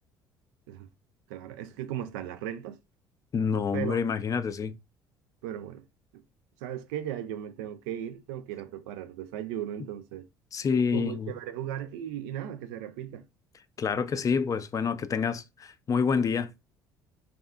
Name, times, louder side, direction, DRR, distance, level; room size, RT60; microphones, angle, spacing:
voice 1, 1.3-2.8 3.7-4.0 5.4-5.8 6.6-10.2 10.9-13.2, right 11 dB, 70° right, 0.4 m, -36 dB
voice 2, 3.3-4.8 10.5-11.3 13.8-16.5, left 6 dB, 30° left, 0.3 m, -27 dB
2.7 x 2.3 x 2.3 m
hypercardioid pair, 55°, 11 cm